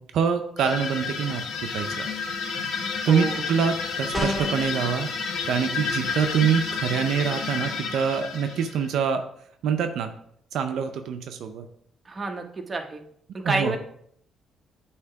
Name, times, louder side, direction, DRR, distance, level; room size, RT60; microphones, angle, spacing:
voice 1, 0.1-1.4 1.7-2.1 2.7-5.1 5.5-9.2 9.6-10.1 10.5-11.7 13.4-13.8, right 7 dB, 80° right, 6 dB, 0.5 m, -25 dB
sound 1, 0.6-9.0, left 5 dB, 75° left, 1.0 m, -31 dB
voice 2, 3.1-3.4 12.1-13.0 13.3-13.8, right 2 dB, 30° right, 4 dB, 0.9 m, -29 dB
sound 2, 4.1-4.7, equal, 5° left, 1.3 m, -27 dB
8.2 x 2.9 x 4.6 m, 0.67 s
cardioid pair, 90°, 0 cm